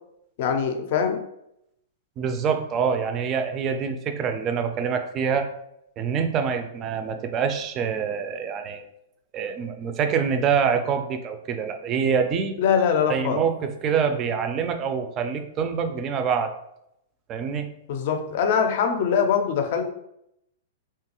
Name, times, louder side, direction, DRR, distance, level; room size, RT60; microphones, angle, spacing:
voice 1, 0.4-1.2 12.6-13.4 17.9-19.9, left 7 dB, 55° left, 5 dB, 0.4 m, -23 dB
voice 2, 2.2-5.5 6.0-8.9 9.3-12.6 13.1-16.5 17.3-17.7, right 6 dB, 30° right, 7 dB, 0.3 m, -25 dB
2.9 x 2.3 x 2.9 m, 0.79 s
hypercardioid pair, 140°, 0 cm